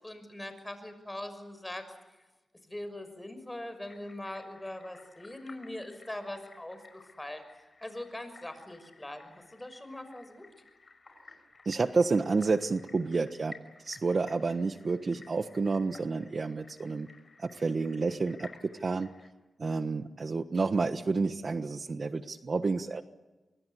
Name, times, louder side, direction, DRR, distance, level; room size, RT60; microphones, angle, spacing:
voice 1, 0.0-1.9 2.6-7.4 7.8-10.5, left 1 dB, 15° left, 9 dB, 6.3 m, -42 dB
sound 1, 3.9-19.3, left 3 dB, 45° left, 5.9 m, -55 dB
voice 2, 11.6-13.5 13.8-17.1 17.4-19.1 19.6-23.0, right 4 dB, 55° right, 11 dB, 1.3 m, -30 dB
26.5 x 22.5 x 8.4 m, 1.1 s
cardioid pair, 60°, 0 cm